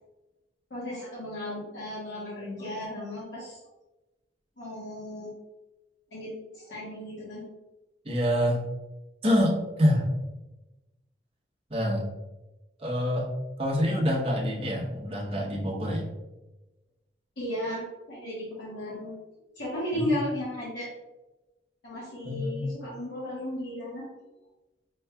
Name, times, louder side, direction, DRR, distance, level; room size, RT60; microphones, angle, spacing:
voice 1, 0.7-3.6 4.6-5.3 6.1-7.4 17.4-19.1 19.5-20.9 21.8-24.1, left 1 dB, 70° left, -8 dB, 1.3 m, -35 dB
voice 2, 8.0-8.6 9.2-10.1 11.7-12.1 12.8-13.3 13.6-16.1 19.9-20.1 22.2-22.7, equal, 30° right, -2 dB, 0.9 m, -26 dB
5.4 x 3.1 x 2.2 m, 1.0 s
head